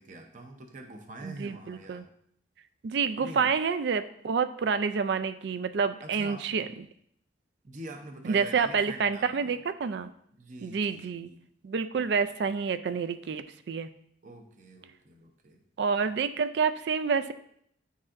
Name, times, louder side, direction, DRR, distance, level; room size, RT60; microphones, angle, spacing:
voice 1, 0.0-2.1 3.2-3.5 6.0-6.7 7.6-9.6 10.4-11.5 12.0-12.1 14.2-15.6, right 1 dB, 40° right, 3 dB, 0.7 m, -45 dB
voice 2, 1.2-2.0 2.8-6.7 8.2-10.1 10.6-11.3 11.6-13.9 15.8-17.3, right 5 dB, 60° right, 12 dB, 0.3 m, -28 dB
9.8 x 4.0 x 2.5 m, 0.69 s
head